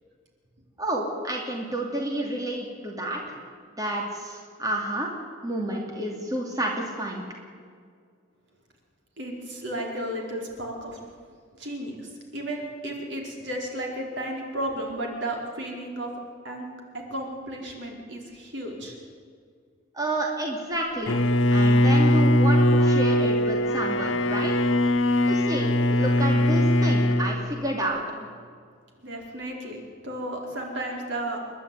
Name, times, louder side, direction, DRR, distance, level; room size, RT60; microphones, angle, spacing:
voice 1, 0.8-3.4 3.7-5.1 5.4-7.2 19.9-21.2 21.5-24.5 25.3-28.0, right 1 dB, 20° right, -1 dB, 2.6 m, -30 dB
voice 2, 9.2-11.1 11.6-16.1 16.4-16.7 16.9-19.0 29.0-31.4, right 1 dB, 65° right, 0 dB, 4.5 m, -33 dB
Bowed string instrument, 21.1-27.3, left 1 dB, 90° left, 1.2 m, -21 dB
28.5 x 11.5 x 9.5 m, 2.1 s
head